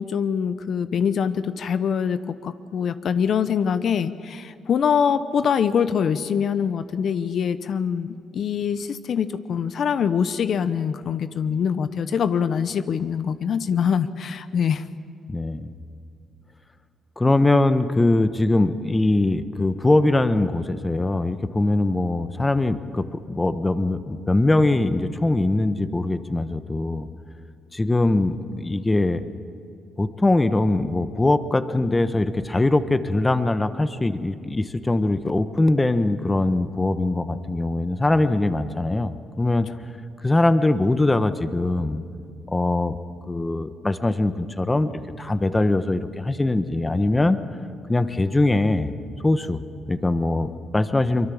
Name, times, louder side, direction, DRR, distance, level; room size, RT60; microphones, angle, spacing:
voice 1, 0.0-14.8, left 7 dB, 60° left, 12 dB, 0.8 m, -24 dB
voice 2, 15.3-15.7 17.2-27.1 27.7-29.2 30.0-39.7 40.2-42.0 42.5-43.0 43.3-44.9 45.2-47.4 47.9-48.9 49.2-49.6 49.9-51.3, left 2 dB, 15° left, 11 dB, 1.1 m, -22 dB
23.5 x 23.0 x 7.2 m, 2.3 s
cardioid pair, 90°, 0 cm